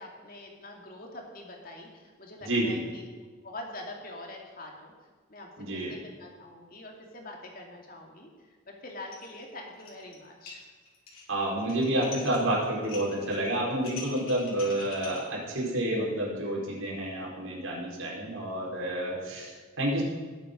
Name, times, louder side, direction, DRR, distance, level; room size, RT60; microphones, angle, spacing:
voice 1, 0.0-3.1 3.4-4.9 5.3-8.3 8.8-10.6, left 1 dB, 45° left, 0 dB, 2.7 m, -44 dB
voice 2, 2.4-2.8 5.6-5.9 11.3-20.0, right 1 dB, 80° right, -4 dB, 5.1 m, -29 dB
sound 1, 9.1-9.4 9.7-10.2 10.5-15.2, left 4 dB, 80° left, 3.7 m, -44 dB
19.0 x 8.4 x 5.4 m, 1.4 s
head